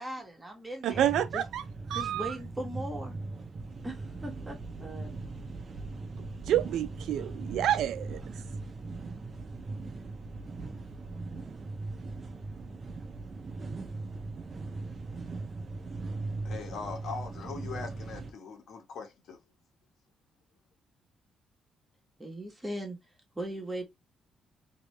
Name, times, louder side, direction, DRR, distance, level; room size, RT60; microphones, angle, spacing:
voice 1, 0.0-1.4 1.9-3.1 3.8-5.2 22.2-23.0 23.3-23.8, right 1 dB, 15° right, 1.4 m, -39 dB
voice 2, 0.8-1.6 1.9-2.3 6.5-8.2, right 11 dB, 80° right, 0.4 m, -28 dB
sound 1, 0.9-18.3, right 3 dB, 40° right, 0.6 m, -39 dB
voice 3, 16.3-19.4, left 5 dB, 70° left, 1.3 m, -41 dB
2.9 x 2.8 x 3.2 m
cardioid pair, 90°, 0 cm